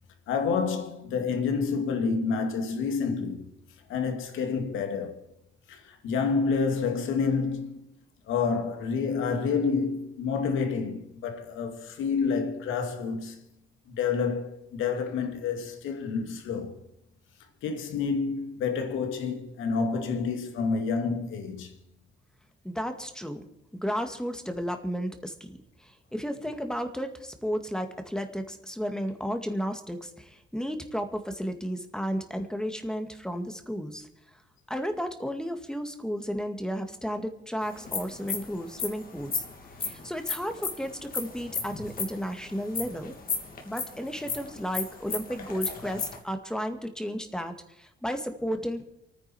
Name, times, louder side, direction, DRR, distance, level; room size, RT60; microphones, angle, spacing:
voice 1, 0.3-3.5 3.9-5.2 5.7-7.8 8.3-13.4 13.9-16.7 17.6-21.7, left 5 dB, 90° left, 2.2 m, -28 dB
voice 2, 22.6-23.4 23.7-34.1 34.7-39.4 39.8-43.1 43.7-48.8, equal, 5° left, 2.0 m, -33 dB
sound 1, 37.7-46.2, left 5 dB, 45° left, 3.0 m, -34 dB
29.5 x 9.9 x 4.5 m
cardioid pair, 90°, 20 cm